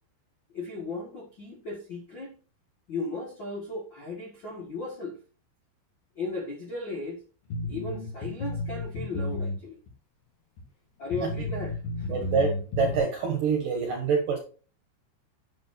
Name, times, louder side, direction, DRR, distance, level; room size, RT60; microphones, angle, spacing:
voice 1, 0.5-2.3 2.9-5.2 6.1-7.2 7.6-9.8 11.0-12.1, left 3 dB, 80° left, 1.0 m, -36 dB
sound 1, 7.5-9.6 9.9-10.0 10.6-10.7 11.1-13.0, left 2 dB, 60° left, 4.9 m, -32 dB
voice 2, 12.1-14.4, right 5 dB, 65° right, 2.4 m, -26 dB
9.9 x 7.9 x 2.7 m
omnidirectional pair, 5.2 m